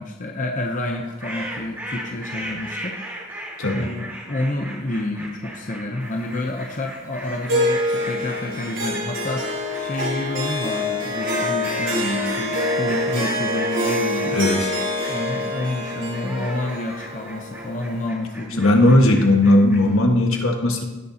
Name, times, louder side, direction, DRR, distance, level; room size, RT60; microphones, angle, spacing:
voice 1, 0.0-3.2 3.7-14.4 15.1-19.0, left 1 dB, 35° left, 2 dB, 0.7 m, -29 dB
sound 1, 0.8-19.9, right 1 dB, 10° right, 1.8 m, -36 dB
Harp, 7.5-18.1, left 1 dB, 60° right, 2.6 m, -26 dB
voice 2, 14.3-14.7 18.6-20.8, left 1 dB, 75° left, 2 dB, 1.5 m, -17 dB
17.0 x 6.8 x 2.8 m, 1.1 s
head